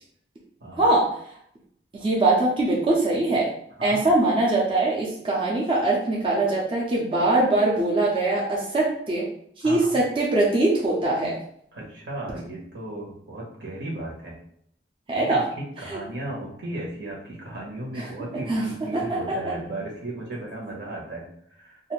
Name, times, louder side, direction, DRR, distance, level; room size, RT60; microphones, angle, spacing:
voice 1, 1.9-3.5 3.8-9.2 9.6-11.4 15.1-15.4 15.9-16.0 18.0-18.1 18.5-18.6 18.9-19.4, right 2 dB, 30° right, -4 dB, 0.5 m, -22 dB
voice 2, 3.8-4.1 9.6-10.0 11.7-14.4 15.1-21.8, right 1 dB, 75° right, -3 dB, 1.0 m, -35 dB
2.6 x 2.4 x 3.1 m, 0.67 s
head